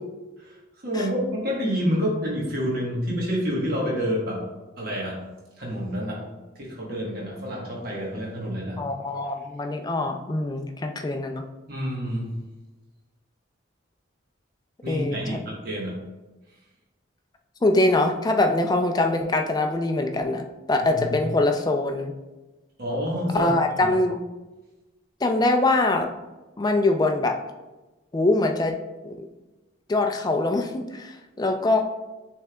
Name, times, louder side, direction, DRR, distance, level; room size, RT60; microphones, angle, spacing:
voice 1, 0.8-4.4 4.8-5.2 5.6-6.3 6.5-8.8 11.7-12.3 14.8-15.9 21.0-21.2 22.8-23.5 23.8-23.9, equal, 45° right, -3 dB, 1.2 m, -28 dB
voice 2, 8.8-11.4 14.9-15.2 17.6-22.1 23.3-24.2 25.2-26.1 26.6-27.4 28.1-28.8 29.0-29.1 29.9-31.8, left 2 dB, 20° left, 5 dB, 0.3 m, -23 dB
6.3 x 3.4 x 2.3 m, 1.1 s
head